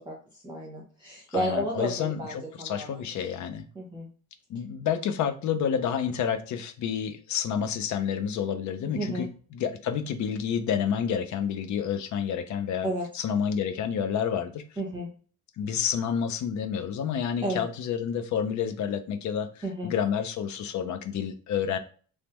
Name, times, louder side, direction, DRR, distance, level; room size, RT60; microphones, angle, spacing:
voice 1, 0.4-3.0 3.7-4.1 8.9-9.3 12.8-13.1 14.8-15.1 17.4-17.6 19.6-19.9, right 1 dB, 10° right, -3 dB, 0.9 m, -32 dB
voice 2, 1.3-3.7 4.5-12.9 13.1-14.6 15.6-21.8, left 8 dB, 50° left, 9 dB, 0.6 m, -29 dB
3.2 x 2.1 x 2.9 m, 0.42 s
cardioid pair, 115°, 36 cm